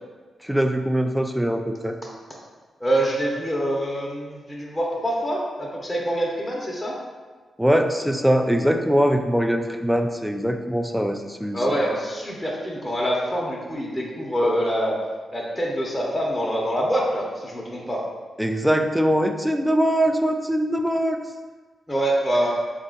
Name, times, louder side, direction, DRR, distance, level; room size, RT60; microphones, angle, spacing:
voice 1, 0.4-2.0 7.6-11.6 18.4-21.2, equal, 5° right, 5 dB, 0.4 m, -22 dB
voice 2, 2.8-7.0 11.5-15.0 15.3-18.0 21.9-22.5, right 1 dB, 20° left, -3 dB, 0.9 m, -25 dB
3.9 x 2.5 x 3.8 m, 1.4 s
supercardioid pair, 50°, 0 cm